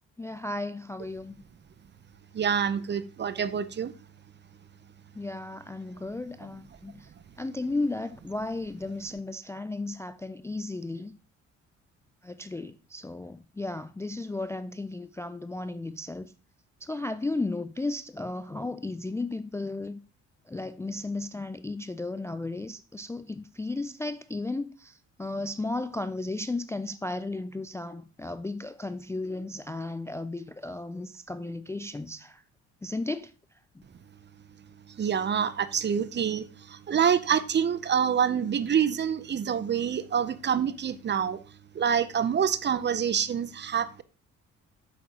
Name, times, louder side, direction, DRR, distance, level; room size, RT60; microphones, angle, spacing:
voice 1, 0.2-1.4 5.2-7.1 7.4-11.1 12.2-16.3 16.8-20.0 20.5-32.4 32.8-33.3, left 2 dB, 10° left, 0.3 m, -34 dB
voice 2, 2.3-3.9 35.0-41.4 41.7-44.0, right 8 dB, 35° right, 0.6 m, -26 dB
8.4 x 6.6 x 2.8 m
cardioid pair, 90°, 30 cm